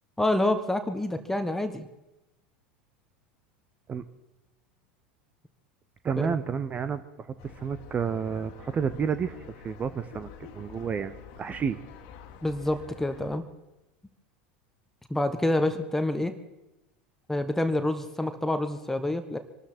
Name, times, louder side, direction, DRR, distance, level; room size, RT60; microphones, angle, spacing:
voice 1, 0.2-1.9 6.2-6.3 12.4-13.4 15.1-16.3 17.3-19.4, left 1 dB, 5° left, 8 dB, 1.2 m, -27 dB
voice 2, 6.0-9.4 9.6-11.8, right 6 dB, 30° right, 12 dB, 0.9 m, -30 dB
sound 1, 7.4-13.4, left 6 dB, 60° left, 1.8 m, -48 dB
25.0 x 13.0 x 4.4 m, 0.98 s
hypercardioid pair, 85°, 5 cm